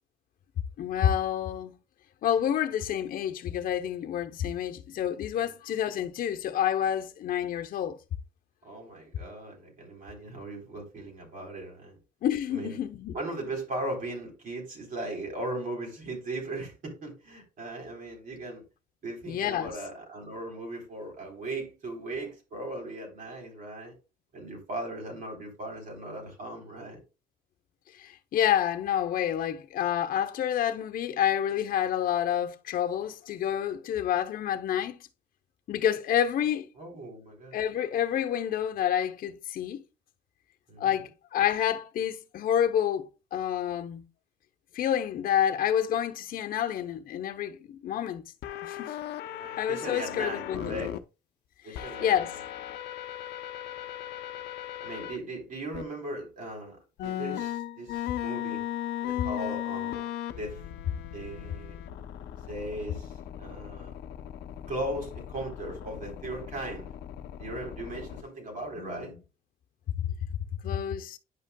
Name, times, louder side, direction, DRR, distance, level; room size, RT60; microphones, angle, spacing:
voice 1, 0.8-1.7 2.2-8.0 12.2-13.1 19.3-19.7 27.9-35.0 35.7-36.7 37.5-39.8 40.8-44.0 44.7-48.3 48.6-48.9 49.6-50.8 51.7-52.3 68.8-69.2 70.0-70.1 70.6-71.2, left 10 dB, 55° left, 0.9 m, -28 dB
voice 2, 8.6-12.0 12.5-12.8 13.1-18.6 19.0-23.9 24.3-27.0 36.8-37.6 40.7-41.0 49.2-51.0 51.6-52.4 54.1-54.2 54.8-58.6 59.0-60.6 61.1-61.8 62.5-63.9 64.7-66.9 67.4-69.1, right 1 dB, 55° right, 3.8 m, -38 dB
sound 1, 48.4-51.0 51.7-55.2 55.7-55.8 57.0-68.2, left 12 dB, 80° left, 0.7 m, -37 dB
10.0 x 5.6 x 2.3 m
cardioid pair, 110°, 17 cm